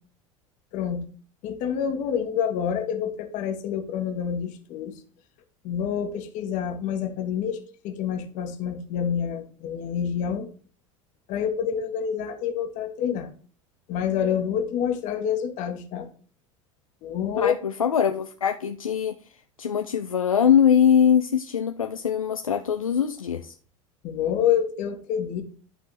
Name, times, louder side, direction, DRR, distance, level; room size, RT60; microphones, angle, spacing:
voice 1, 0.7-1.0 1.4-4.9 5.6-10.5 11.3-13.3 13.9-16.1 17.0-17.6 24.0-25.4, left 8 dB, 45° left, 6 dB, 1.7 m, -27 dB
voice 2, 17.4-19.1 19.6-23.5, left 8 dB, 80° left, 8 dB, 0.5 m, -22 dB
12.0 x 5.4 x 4.1 m, 0.42 s
figure-of-eight pair, 75°, 17 cm